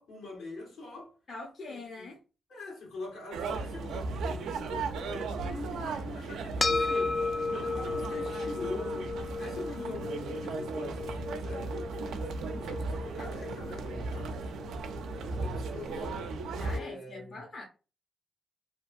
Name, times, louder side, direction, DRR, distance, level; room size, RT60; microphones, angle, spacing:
voice 1, 0.0-1.1 1.7-2.1 2.5-7.2 7.5-11.7 12.5-14.4 15.1-16.3 16.7-17.6, left 3 dB, 80° left, 1.4 m, -43 dB
voice 2, 1.3-2.2 9.7-10.0 12.0-12.7 16.5-17.6, left 3 dB, 60° left, 0.8 m, -44 dB
sound 1, 3.3-16.8, right 3 dB, 80° right, 0.3 m, -36 dB
sound 2, 6.6-15.2, left 3 dB, 35° left, 0.4 m, -35 dB
2.7 x 2.2 x 2.6 m
supercardioid pair, 45°, 0 cm